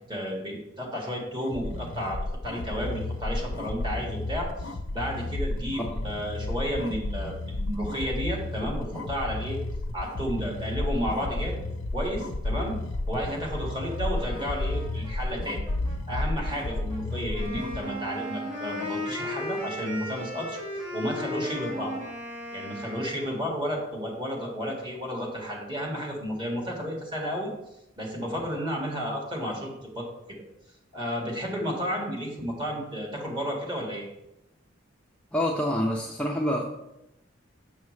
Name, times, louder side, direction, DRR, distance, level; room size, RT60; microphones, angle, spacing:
voice 1, 0.1-2.2 2.4-9.6 9.9-11.6 11.9-12.7 13.1-15.6 16.1-20.6 20.9-21.9 22.5-27.5 28.0-30.0 30.9-34.1, equal, 25° right, -1 dB, 1.7 m, -32 dB
sound 1, 1.4-17.8, left 2 dB, 80° left, 0.6 m, -32 dB
Brass instrument, 13.4-19.6, left 1 dB, 45° right, 2.7 m, -48 dB
Wind instrument woodwind instrument, 17.3-23.5, left 1 dB, 85° right, 2.5 m, -35 dB
voice 2, 35.3-36.6, left 1 dB, 5° left, -2 dB, 0.5 m, -27 dB
7.1 x 5.8 x 3.2 m, 0.88 s
head